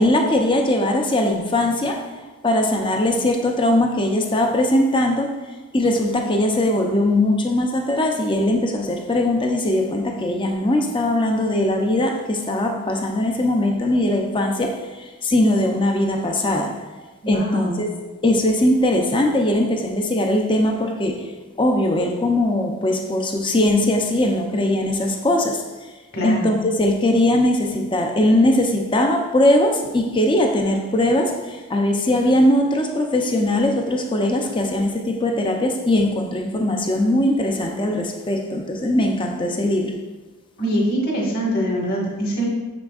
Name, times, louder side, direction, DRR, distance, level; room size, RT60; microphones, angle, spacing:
voice 1, 0.0-2.0 2.4-5.3 5.7-16.8 17.3-17.9 18.2-21.2 21.6-25.6 26.2-40.0, left 1 dB, 20° left, 3 dB, 0.6 m, -20 dB
voice 2, 17.2-17.8 26.1-26.5 40.6-42.5, equal, 45° left, -4 dB, 1.6 m, -23 dB
6.9 x 6.0 x 2.4 m, 1.3 s
head